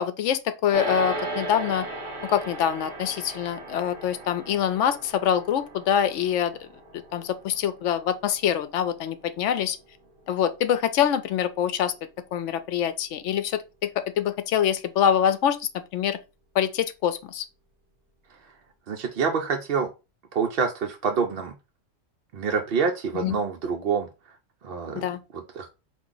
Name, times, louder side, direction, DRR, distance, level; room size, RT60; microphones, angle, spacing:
voice 1, 0.0-1.9 2.2-6.7 6.9-9.8 10.3-11.9 12.3-16.2 16.5-17.4 23.1-23.4 24.9-25.2, left 9 dB, 75° left, 0.9 m, -25 dB
sound 1, 0.7-10.2, right 2 dB, 25° right, 1.7 m, -37 dB
voice 2, 18.9-19.9 20.3-21.5 22.3-24.1 24.6-25.1 25.3-25.7, right 5 dB, 60° right, 0.7 m, -27 dB
4.5 x 2.5 x 3.8 m
omnidirectional pair, 1.3 m